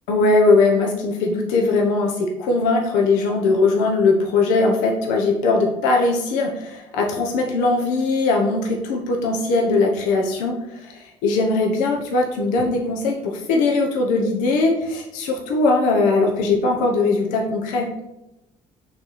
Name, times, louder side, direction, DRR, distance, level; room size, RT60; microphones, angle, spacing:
voice 1, 0.1-17.9, left 3 dB, 85° left, 1 dB, 0.9 m, -20 dB
6.3 x 3.2 x 5.7 m, 0.93 s
supercardioid pair, 85°, 13 cm